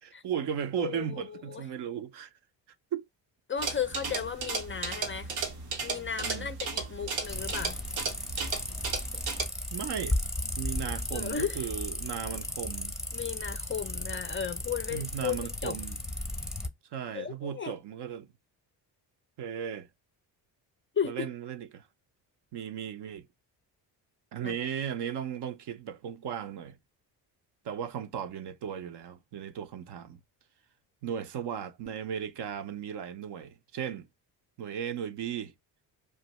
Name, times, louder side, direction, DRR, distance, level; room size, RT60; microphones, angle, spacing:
voice 1, 0.0-2.3 2.9-3.0 6.2-6.5 9.7-10.2 10.6-12.9 14.9-16.0 16.9-18.3 19.4-19.9 21.0-21.9 22.5-23.3 24.3-26.8 27.6-30.2 31.0-34.1 34.6-35.5, right 8 dB, 55° right, 0.6 m, -36 dB
voice 2, 0.8-1.6 3.5-5.4 5.8-7.8 11.1-11.7 13.1-15.8 17.1-17.7 21.0-21.3 24.4-24.6, left 7 dB, 25° left, 0.4 m, -35 dB
sound 1, 3.6-9.4, right 4 dB, 85° right, 0.9 m, -35 dB
sound 2, 7.2-16.7, left 1 dB, ahead, 0.7 m, -35 dB
2.6 x 2.2 x 4.0 m
supercardioid pair, 60°, 49 cm